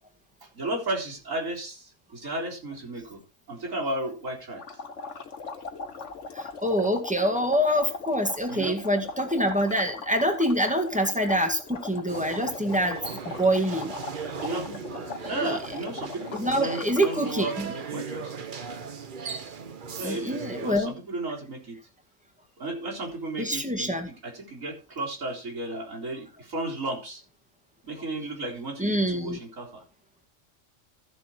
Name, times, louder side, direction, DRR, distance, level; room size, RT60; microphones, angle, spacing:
voice 1, 0.5-3.2 3.5-4.6 8.5-8.8 14.4-18.3 20.0-21.8 22.6-27.2 27.8-29.8, right 2 dB, 90° right, -3 dB, 4.4 m, -34 dB
sound 1, 4.6-17.4, left 4 dB, 65° left, 1.6 m, -39 dB
voice 2, 6.3-13.0 13.3-13.9 14.7-14.8 15.4-15.6 16.3-17.7 20.0-21.0 23.4-24.1 28.8-29.4, equal, 5° right, 4 dB, 1.9 m, -26 dB
sound 2, 12.1-20.7, right 5 dB, 45° right, 1.0 m, -38 dB
14.5 x 6.8 x 4.4 m, 0.31 s
omnidirectional pair, 1.3 m